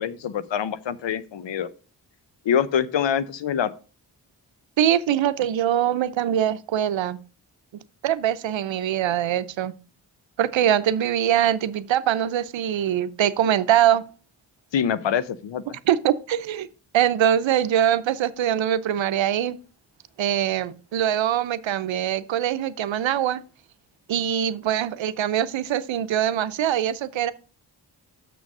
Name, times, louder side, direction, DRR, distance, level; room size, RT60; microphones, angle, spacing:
voice 1, 0.0-1.7 2.4-3.7 14.7-15.8, left 8 dB, 75° left, 0.8 m, -25 dB
voice 2, 4.8-7.2 8.0-9.7 10.4-14.0 15.9-16.7 16.9-19.6 20.2-23.4 24.1-27.3, right 10 dB, 85° right, 0.7 m, -23 dB
6.8 x 6.3 x 5.4 m
cardioid pair, 50°, 44 cm